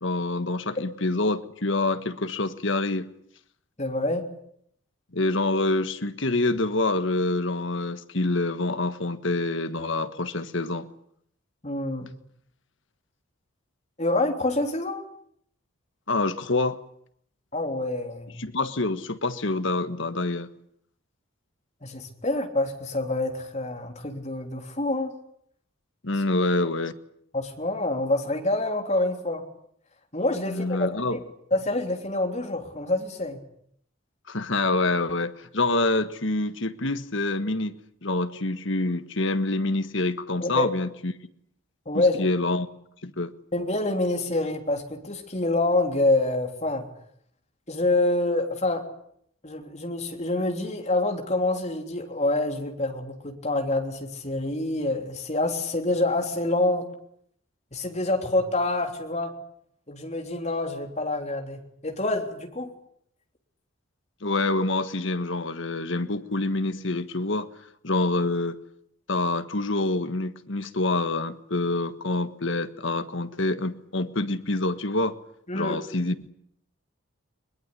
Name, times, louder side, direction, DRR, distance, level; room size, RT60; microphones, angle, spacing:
voice 1, 0.0-3.1 5.1-10.9 16.1-16.8 18.4-20.5 26.0-27.0 30.4-31.2 34.3-37.7 38.0-41.1 41.9-42.7 43.0-43.3 64.2-67.5 67.8-68.6 69.1-75.2 75.5-76.1, left 2 dB, 60° left, 1.5 m, -26 dB
voice 2, 3.8-4.2 11.6-12.1 14.0-15.0 17.5-18.4 21.8-25.1 27.3-29.4 30.1-31.2 31.5-33.4 40.4-40.7 41.8-42.2 43.5-46.8 47.7-48.8 49.4-56.9 57.7-59.3 59.9-62.7 75.5-75.8, left 2 dB, 30° left, 3.4 m, -26 dB
22.0 x 22.0 x 9.9 m
head